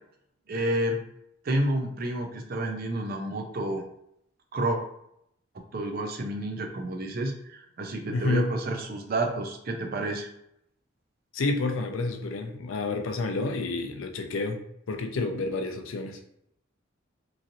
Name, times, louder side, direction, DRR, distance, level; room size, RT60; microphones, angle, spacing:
voice 1, 0.5-1.0 1.4-3.9 4.5-4.8 5.7-10.3, right 1 dB, 45° right, 3 dB, 0.4 m, -30 dB
voice 2, 8.1-8.5 11.3-14.6 14.9-16.2, left 3 dB, 80° left, 5 dB, 0.4 m, -29 dB
3.0 x 2.6 x 2.6 m, 0.76 s
head